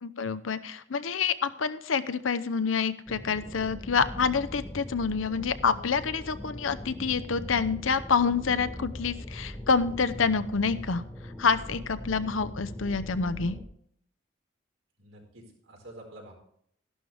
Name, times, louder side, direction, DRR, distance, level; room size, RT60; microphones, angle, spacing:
voice 1, 0.0-11.0 11.4-13.6, left 5 dB, 85° left, 14 dB, 0.7 m, -27 dB
sound 1, 3.1-13.6, equal, 5° left, 1.2 m, -41 dB
voice 2, 15.0-16.3, right 1 dB, 90° right, 0 dB, 4.4 m, -48 dB
13.0 x 11.5 x 3.4 m, 0.66 s
head